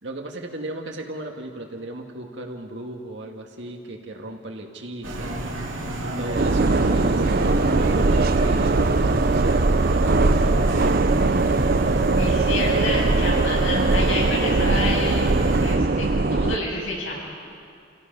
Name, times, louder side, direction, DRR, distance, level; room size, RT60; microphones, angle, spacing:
voice 1, 0.0-5.5 6.0-10.9, right 1 dB, 65° right, 2 dB, 2.0 m, -36 dB
sound 1, 5.0-15.8, right 1 dB, 85° right, 2.7 m, -31 dB
sound 2, 6.3-16.6, right 3 dB, 50° right, 0.6 m, -20 dB
voice 2, 12.2-17.1, left 2 dB, 75° left, -4 dB, 7.5 m, -29 dB
29.0 x 17.0 x 5.4 m, 2.4 s
head